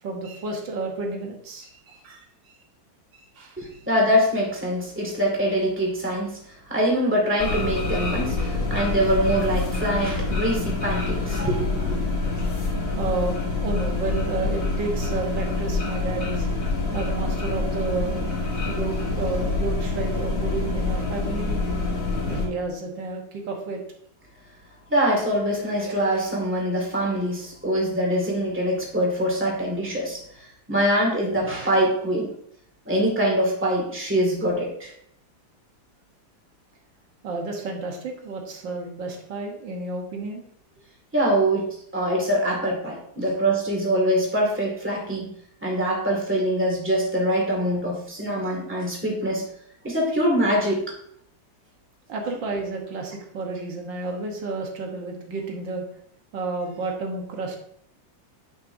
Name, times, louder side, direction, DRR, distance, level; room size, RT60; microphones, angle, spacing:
voice 1, 0.0-2.3 3.1-3.8 13.0-16.5 16.9-18.2 18.7-21.7 22.2-23.8 37.2-40.4 43.2-43.3 52.1-55.8 56.3-57.6, right 3 dB, 75° right, 1 dB, 1.9 m, -31 dB
voice 2, 3.6-6.4 6.7-11.9 24.9-32.3 32.9-34.9 41.1-41.7 41.9-45.3 45.6-49.4 49.8-50.8, equal, 5° right, -2 dB, 1.9 m, -24 dB
sound 1, 7.4-22.5, left 3 dB, 45° left, 2.1 m, -26 dB
10.0 x 5.8 x 2.6 m, 0.69 s
omnidirectional pair, 2.0 m